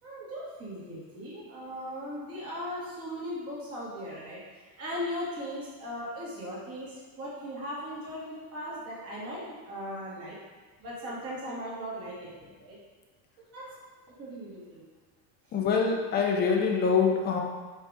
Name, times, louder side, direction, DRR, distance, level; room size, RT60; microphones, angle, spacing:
voice 1, 0.0-10.4 10.8-12.8 13.4-13.6 14.2-14.8, equal, 30° right, -6 dB, 2.0 m, -38 dB
voice 2, 15.5-17.4, left 5 dB, 25° left, 1 dB, 0.6 m, -25 dB
5.5 x 5.4 x 3.6 m, 1.4 s
cardioid pair, 165°, 43 cm